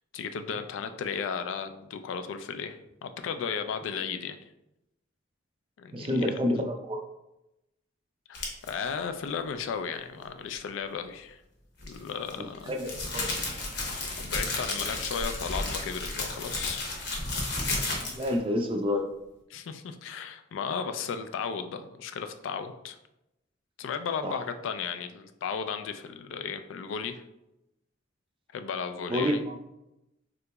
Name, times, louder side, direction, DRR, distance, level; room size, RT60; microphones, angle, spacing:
voice 1, 0.1-2.8 3.0-4.4 5.8-6.3 8.3-11.4 11.8-12.7 14.2-16.9 19.5-23.0 23.8-27.2 28.5-29.4, left 6 dB, 80° left, 8 dB, 0.3 m, -35 dB
voice 2, 5.9-7.0 12.6-13.3 18.1-19.1 24.2-24.4 29.1-29.6, left 1 dB, 30° right, 4 dB, 0.3 m, -28 dB
sound 1, 8.3-8.7 11.8-18.4, left 2 dB, 60° left, 0.8 m, -32 dB
3.6 x 2.9 x 2.2 m, 0.88 s
head